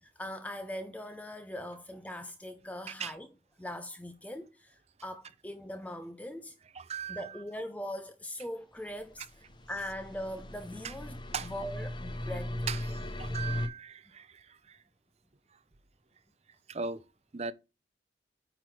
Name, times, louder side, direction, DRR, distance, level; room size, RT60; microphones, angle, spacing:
voice 1, 0.2-3.3 3.6-6.6 7.1-9.3 9.7-12.7, left 1 dB, 10° left, 0.5 m, -41 dB
voice 2, 6.7-7.4 9.2-9.3 10.8-10.9 11.3-11.5 12.7-14.8 16.7-17.0 17.3-17.5, right 5 dB, 35° right, 0.5 m, -39 dB
sound 1, 8.9-13.7, left 1 dB, 25° left, 0.9 m, -37 dB
9.3 x 4.0 x 4.4 m
head